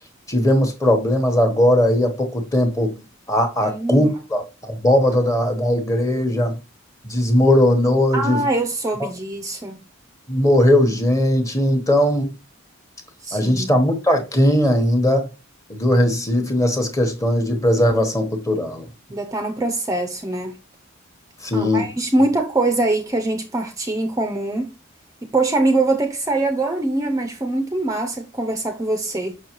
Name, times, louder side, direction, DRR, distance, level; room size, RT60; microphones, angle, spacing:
voice 1, 0.3-2.9 3.3-6.6 7.0-8.4 9.0-9.1 10.3-12.3 13.3-15.3 15.7-18.9 21.4-21.9, left 1 dB, 15° left, 1.0 m, -18 dB
voice 2, 3.6-4.1 8.1-9.8 13.2-13.8 19.1-20.6 21.5-24.7 25.3-29.4, right 2 dB, 15° right, 0.5 m, -23 dB
6.2 x 5.9 x 3.0 m
head